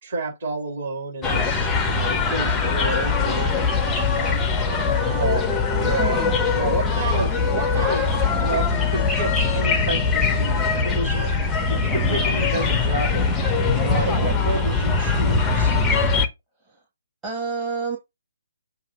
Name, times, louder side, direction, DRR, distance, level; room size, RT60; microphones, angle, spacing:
voice 1, 0.0-3.8 5.0-5.4 5.7-6.2 6.5-11.3 11.7-13.2 13.7-15.7, right 3 dB, 40° right, 3.6 m, -30 dB
sound 1, 1.2-16.3, left 4 dB, 10° left, 0.7 m, -21 dB
voice 2, 4.0-5.1 16.6-16.8 17.2-18.0, right 4 dB, 15° right, 1.4 m, -31 dB
7.2 x 2.6 x 5.2 m
figure-of-eight pair, 140°, 0 cm